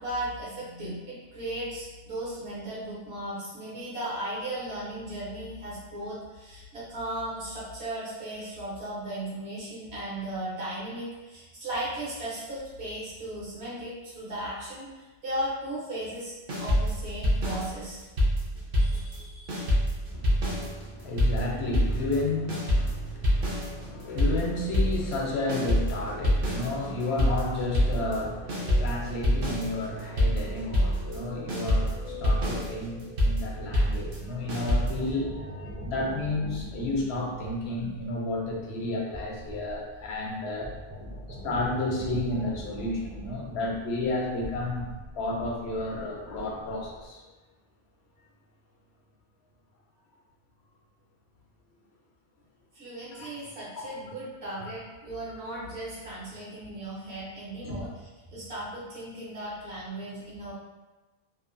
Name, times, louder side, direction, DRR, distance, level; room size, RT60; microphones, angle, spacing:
voice 1, 0.0-16.3 16.6-18.0 18.8-19.6 52.7-57.9 58.3-60.5, right 1 dB, 75° right, -8 dB, 1.3 m, -36 dB
sound 1, 16.5-19.2 19.5-35.1, equal, 60° right, 0.8 m, -26 dB
voice 2, 20.1-40.7 41.3-44.9 45.1-47.3 53.1-53.9 54.6-54.7 57.6-57.8, left 2 dB, 75° left, -1 dB, 0.8 m, -32 dB
sound 2, 23.9-36.1 36.3-36.4, left 3 dB, 50° left, 0.4 m, -46 dB
sound 3, 34.5-47.1, equal, 30° right, 0.3 m, -42 dB
2.8 x 2.1 x 2.5 m, 1.2 s
omnidirectional pair, 1.1 m